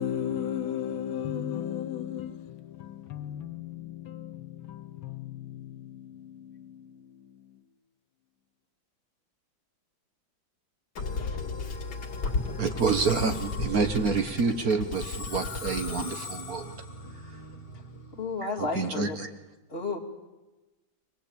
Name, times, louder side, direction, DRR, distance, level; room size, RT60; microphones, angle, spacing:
voice 1, 0.0-7.4, left 9 dB, 80° left, 10 dB, 2.1 m, -36 dB
Musical instrument, 11.0-18.3, left 3 dB, 55° left, 2.6 m, -35 dB
voice 2, 12.5-16.7 18.6-19.3, right 4 dB, 55° right, 8 dB, 1.3 m, -28 dB
voice 3, 18.2-19.2 19.7-20.0, left 3 dB, 30° left, 1 dB, 2.2 m, -32 dB
23.5 x 19.0 x 8.5 m, 1.2 s
omnidirectional pair, 2.2 m